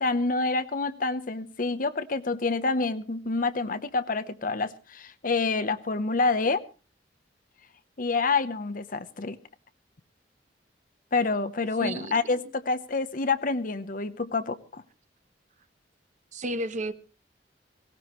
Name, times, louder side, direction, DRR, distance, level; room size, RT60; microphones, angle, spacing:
voice 1, 0.0-6.6 8.0-9.4 11.1-14.8, left 3 dB, 50° left, 12 dB, 0.9 m, -27 dB
voice 2, 11.8-12.2 16.3-16.9, right 1 dB, 40° right, 11 dB, 1.0 m, -31 dB
18.0 x 17.5 x 3.1 m, 0.33 s
head